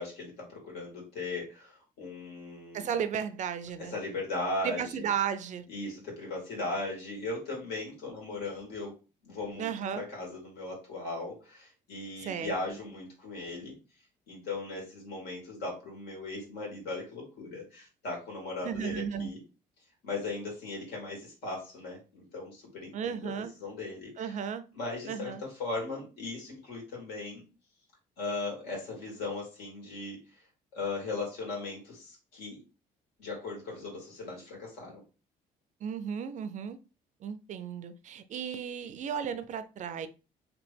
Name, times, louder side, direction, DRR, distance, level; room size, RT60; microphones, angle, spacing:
voice 1, 0.0-2.9 3.8-5.1 5.7-8.9 9.2-13.8 14.3-19.4 20.0-23.3 23.6-24.4 24.7-27.4 28.2-30.4 30.7-32.6 33.2-35.0, left 2 dB, 80° left, 2.0 m, -38 dB
voice 2, 2.7-3.9 4.6-5.7 9.6-10.0 12.2-12.8 18.6-19.3 22.9-23.5 24.2-24.6 25.1-25.4 35.8-36.8 37.2-40.1, right 8 dB, 45° right, 0.4 m, -34 dB
3.0 x 3.0 x 3.3 m
cardioid pair, 110°, 17 cm